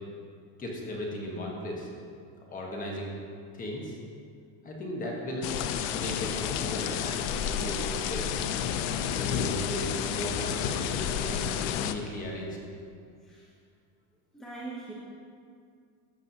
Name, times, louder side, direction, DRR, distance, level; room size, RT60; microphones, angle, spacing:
voice 1, 0.6-1.9 2.5-3.1 3.5-4.0 4.6-5.5 5.9-8.4 9.1-12.6, left 1 dB, 20° left, -1 dB, 1.2 m, -36 dB
sound 1, 5.4-11.9, left 8 dB, 65° left, 0.6 m, -30 dB
voice 2, 14.3-14.9, right 3 dB, ahead, -7 dB, 0.8 m, -42 dB
13.5 x 6.2 x 2.8 m, 2.3 s
cardioid pair, 155°, 37 cm